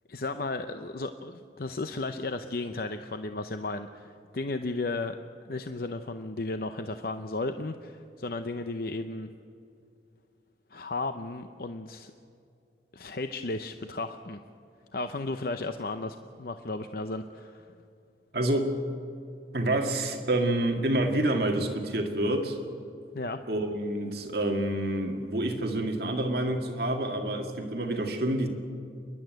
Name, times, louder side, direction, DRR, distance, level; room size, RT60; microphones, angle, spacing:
voice 1, 0.1-5.2 5.4-9.3 10.7-12.1 12.9-14.4 14.9-17.7 23.1-23.4, left 2 dB, 55° left, 8 dB, 0.7 m, -34 dB
voice 2, 18.3-18.7 19.5-22.6 23.5-28.5, right 1 dB, 60° right, 3 dB, 2.0 m, -28 dB
30.0 x 11.0 x 9.3 m, 2.6 s
head